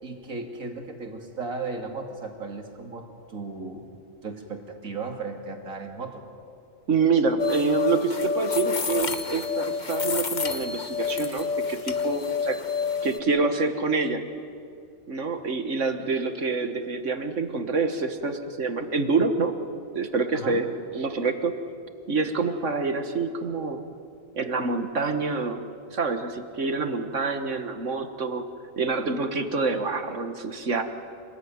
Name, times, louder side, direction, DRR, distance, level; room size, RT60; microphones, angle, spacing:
voice 1, 0.0-3.9 4.2-6.3 20.3-20.6, right 3 dB, 85° right, 3 dB, 3.0 m, -36 dB
voice 2, 6.9-12.6 13.0-14.2 15.1-19.5 20.0-20.7 20.9-21.5 22.1-23.8 24.3-25.6 25.9-28.5 28.8-30.8, right 4 dB, 65° right, 8 dB, 1.8 m, -26 dB
sound 1, 7.4-13.2, left 5 dB, 35° left, 1.3 m, -28 dB
27.0 x 20.0 x 9.5 m, 2.5 s
omnidirectional pair, 1.4 m